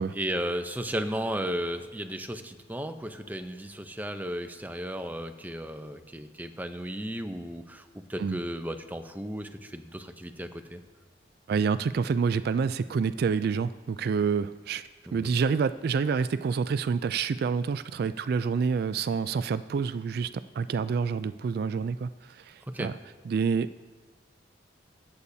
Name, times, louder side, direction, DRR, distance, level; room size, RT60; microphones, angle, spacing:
voice 1, 0.0-10.8 15.1-15.3 22.7-22.9, equal, 10° right, 7 dB, 0.7 m, -34 dB
voice 2, 11.5-14.8 15.1-22.9 23.3-23.8, right 5 dB, 60° right, 14 dB, 0.3 m, -28 dB
23.5 x 8.3 x 2.7 m, 1.3 s
head